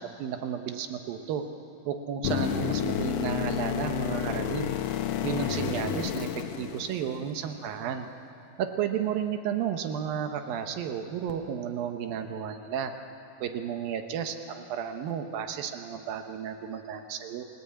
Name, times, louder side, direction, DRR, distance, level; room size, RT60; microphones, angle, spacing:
voice 1, 0.0-1.4 1.9-4.7 5.2-8.1 8.6-12.9 13.4-17.5, right 8 dB, 80° right, 7 dB, 2.8 m, -33 dB
sound 1, 2.2-7.3 11.3-11.4, left 10 dB, 70° left, 1.6 m, -30 dB
29.0 x 17.5 x 8.6 m, 2.8 s
omnidirectional pair, 4.1 m